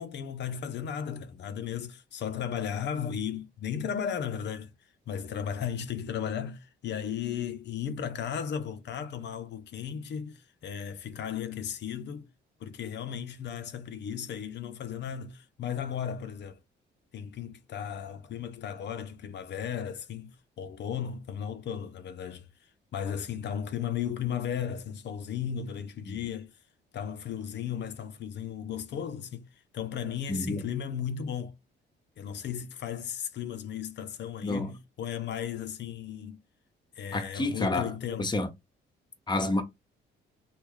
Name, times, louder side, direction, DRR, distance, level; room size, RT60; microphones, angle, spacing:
voice 1, 0.0-4.7 5.1-12.3 12.6-16.6 17.1-22.5 22.9-26.5 26.9-29.5 29.7-31.5 32.2-36.4 37.0-38.3, left 8 dB, 65° left, 0.6 m, -35 dB
voice 2, 30.3-30.6 34.4-34.7 37.1-37.9 38.2-38.5 39.3-39.6, left 2 dB, 20° left, 0.9 m, -29 dB
3.1 x 2.3 x 3.6 m
cardioid pair, 90°, 20 cm